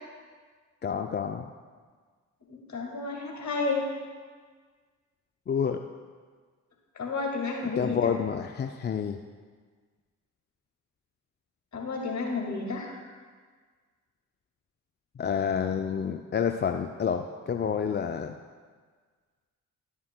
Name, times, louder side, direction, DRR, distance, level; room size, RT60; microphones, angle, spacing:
voice 1, 0.8-1.5 5.5-5.8 7.8-9.2 15.2-18.4, left 7 dB, 30° left, 6 dB, 0.4 m, -29 dB
voice 2, 2.5-3.8 7.0-8.0 11.7-13.0, left 3 dB, 50° left, 0 dB, 2.0 m, -31 dB
11.5 x 7.2 x 2.2 m, 1.6 s
hypercardioid pair, 40°, 38 cm